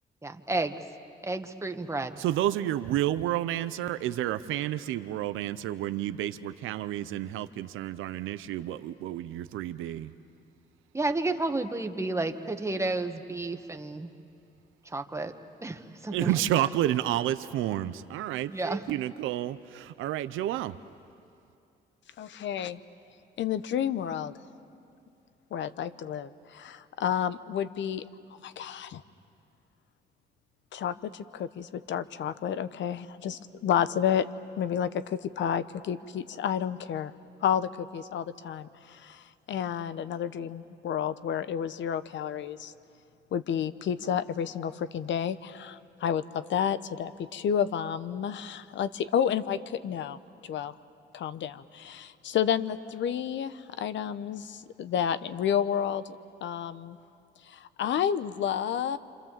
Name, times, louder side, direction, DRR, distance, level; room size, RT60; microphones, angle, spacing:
voice 1, 0.2-0.8 1.2-2.2 10.9-14.1 14.8-15.3 15.6-16.4 18.5-18.9, right 2 dB, 15° right, 6 dB, 1.4 m, -31 dB
voice 2, 2.2-10.1 16.1-20.8, right 13 dB, 85° right, 12 dB, 0.7 m, -30 dB
voice 3, 22.2-22.8 23.4-24.3 25.5-28.0 28.4-29.0 30.7-34.3 34.6-37.1 37.4-38.7 39.0-39.2 39.5-42.7 43.3-50.2 50.5-50.7 51.1-56.0 56.4-57.0 57.5-59.0, left 9 dB, 70° left, 14 dB, 0.9 m, -30 dB
28.0 x 26.0 x 7.4 m, 2.5 s
cardioid pair, 90°, 20 cm